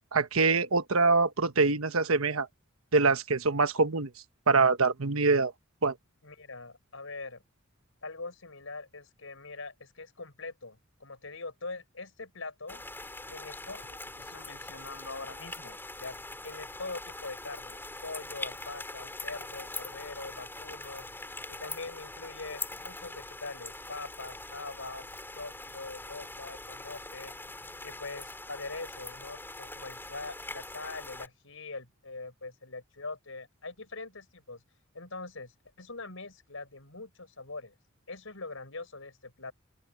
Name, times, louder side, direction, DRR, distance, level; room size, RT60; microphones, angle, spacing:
voice 1, 0.1-2.5 2.9-4.1 4.5-5.5 5.8-5.9, right 4 dB, 85° right, 1.2 m, -24 dB
voice 2, 6.2-7.4 8.0-12.8 13.3-16.2 16.4-25.1 25.3-27.3 27.8-34.6 34.9-37.7 38.1-39.5, left 3 dB, 70° left, 6.2 m, -43 dB
sound 1, 12.7-31.3, left 2 dB, 10° left, 5.3 m, -43 dB
open air
head